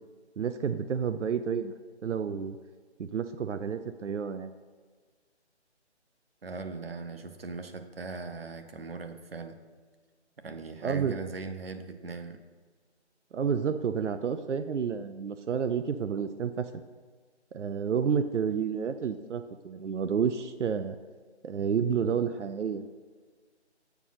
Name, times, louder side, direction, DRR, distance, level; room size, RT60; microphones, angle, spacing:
voice 1, 0.4-1.7 2.0-2.6 3.0-4.5 10.8-11.1 13.3-16.7 17.5-21.0 21.4-22.8, right 7 dB, 85° right, 10 dB, 0.6 m, -30 dB
voice 2, 6.4-9.6 10.4-12.4, right 4 dB, 55° right, 7 dB, 0.8 m, -39 dB
8.2 x 5.0 x 5.6 m, 1.5 s
figure-of-eight pair, 170°, 35 cm